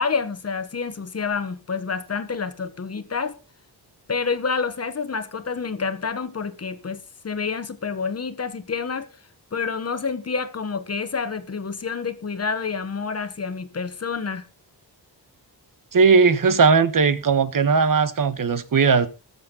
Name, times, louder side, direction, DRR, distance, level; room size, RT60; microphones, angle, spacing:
voice 1, 0.0-3.3 4.1-9.1 9.5-14.4, left 5 dB, 35° left, 1.3 m, -28 dB
voice 2, 15.9-19.1, right 5 dB, 50° right, 1.3 m, -18 dB
20.0 x 7.4 x 4.0 m
wide cardioid pair, 165°, 42 cm